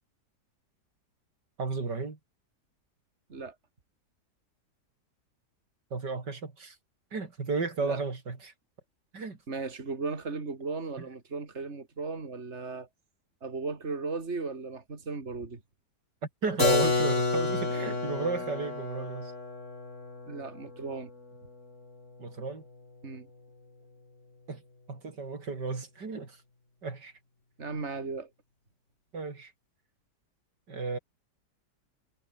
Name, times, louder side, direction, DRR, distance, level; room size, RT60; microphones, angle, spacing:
voice 1, 1.6-2.2 5.9-6.8 7.1-8.5 9.1-9.4 11.0-11.1 16.4-19.3 22.2-22.6 24.5-24.6 24.9-26.4 26.8-27.1 29.1-29.5 30.7-31.0, right 4 dB, 80° right, 4.0 m, -33 dB
voice 2, 9.5-12.9 13.4-15.6 20.3-21.1 23.0-23.3 27.6-28.3, right 4 dB, 40° right, 3.2 m, -36 dB
Keyboard (musical), 16.6-22.2, left 3 dB, 45° left, 4.0 m, -30 dB
omnidirectional pair, 1.8 m